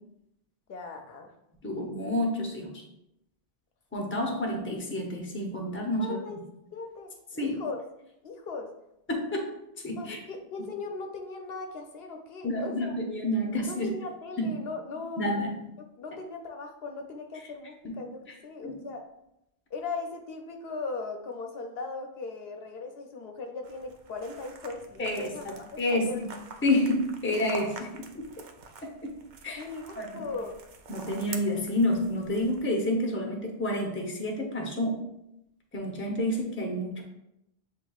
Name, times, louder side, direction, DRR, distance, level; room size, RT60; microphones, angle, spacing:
voice 1, 0.7-1.3 6.0-6.4 6.7-7.8 8.2-8.7 10.0-12.9 13.6-15.5 16.0-19.0 19.7-26.2 29.6-30.6 31.1-31.2, left 3 dB, 70° left, 4 dB, 0.7 m, -38 dB
voice 2, 1.6-2.8 3.9-6.2 7.4-7.6 9.1-9.5 9.8-10.2 12.4-13.9 14.4-14.6 15.2-15.6 16.1-16.2 17.8-18.0 18.6-18.8 25.0-26.3 26.6-28.2 29.0-29.2 29.4-29.6 30.0-30.3 30.9-35.1 35.7-37.0, left 1 dB, 15° left, 0 dB, 0.6 m, -29 dB
sound 1, 23.6-32.7, right 4 dB, 55° right, 0.6 m, -47 dB
7.7 x 2.6 x 2.3 m, 0.84 s
omnidirectional pair, 1.1 m